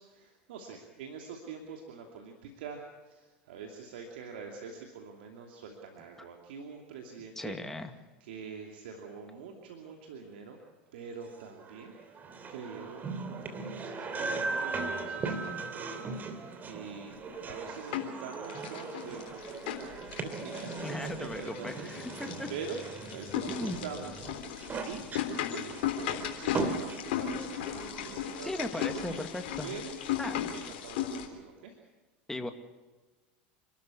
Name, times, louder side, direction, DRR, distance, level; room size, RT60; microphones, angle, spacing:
voice 1, 0.0-7.6 8.2-10.6 10.9-25.1 25.5-27.6 28.0-29.3 29.6-30.0 30.5-31.8, right 5 dB, 75° right, 2 dB, 2.8 m, -45 dB
voice 2, 7.4-7.9 20.8-22.5 23.5-23.8 28.4-29.7 30.2-30.5 32.3-32.5, left 2 dB, 5° left, 6 dB, 2.2 m, -37 dB
sound 1, 11.3-28.9, right 3 dB, 30° right, 3.0 m, -39 dB
sound 2, 17.3-18.2 18.5-31.3, left 9 dB, 70° left, 3.7 m, -36 dB
27.5 x 13.0 x 8.5 m, 1.2 s
hypercardioid pair, 95°, 6 cm